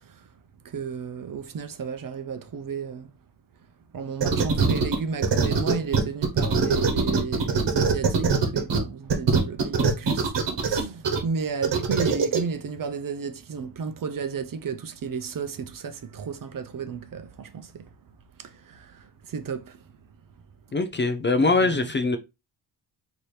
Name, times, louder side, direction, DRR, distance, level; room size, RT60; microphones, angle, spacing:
voice 1, 0.6-3.1 3.9-17.8 18.4-19.8 21.4-21.9, right 5 dB, 50° right, 0.6 m, -33 dB
sound 1, 4.2-4.9 5.2-8.8 9.1-11.2 11.6-12.4, right 5 dB, 70° right, 1.1 m, -21 dB
voice 2, 20.7-22.2, left 3 dB, 25° left, 0.4 m, -22 dB
4.2 x 2.9 x 3.2 m
wide cardioid pair, 120°, 44 cm